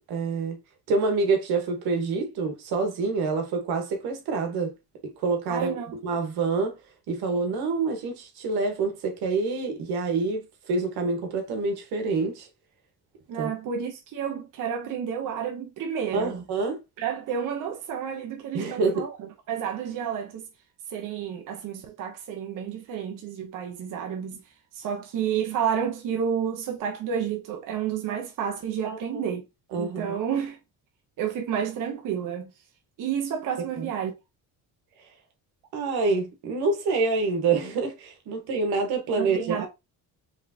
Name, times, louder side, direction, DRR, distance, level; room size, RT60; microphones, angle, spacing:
voice 1, 0.1-0.6 0.9-4.7 5.0-5.7 6.0-6.8 7.1-12.5 13.4-13.5 16.1-16.8 18.5-19.0 28.8-29.2 29.7-30.2 33.8-33.9 35.7-39.7, right 4 dB, 85° right, 1.4 m, -27 dB
voice 2, 5.5-5.9 13.3-16.4 17.0-20.5 20.9-24.4 24.7-29.4 29.8-30.6 31.2-32.5 33.0-34.1 39.2-39.7, right 8 dB, 55° right, 0.9 m, -30 dB
4.8 x 3.3 x 2.8 m
cardioid pair, 130°, 37 cm